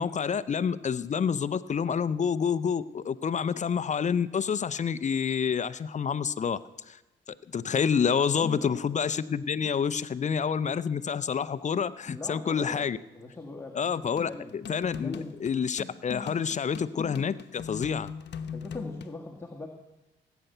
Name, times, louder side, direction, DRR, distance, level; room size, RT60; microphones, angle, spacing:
voice 1, 0.0-6.6 6.9-7.0 7.3-13.0 13.7-15.1 15.4-18.1, left 6 dB, 35° left, 15 dB, 0.6 m, -28 dB
voice 2, 8.3-8.8 12.0-12.8 13.1-14.5 15.0-15.4 15.7-15.8 18.5-19.7, left 2 dB, 10° left, 1 dB, 1.7 m, -41 dB
sound 1, 14.2-19.2, left 6 dB, 60° left, 1.0 m, -40 dB
18.0 x 9.1 x 6.8 m, 1.1 s
cardioid pair, 90°, 20 cm